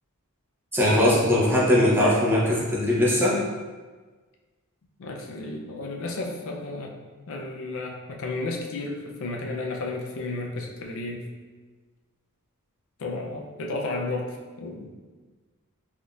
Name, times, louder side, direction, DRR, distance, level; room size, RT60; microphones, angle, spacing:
voice 1, 0.7-3.4, left 1 dB, 10° right, -5 dB, 0.6 m, -20 dB
voice 2, 5.0-7.0 7.3-11.3 13.0-14.9, left 2 dB, 65° left, 1 dB, 0.4 m, -33 dB
3.5 x 2.6 x 2.3 m, 1.3 s
head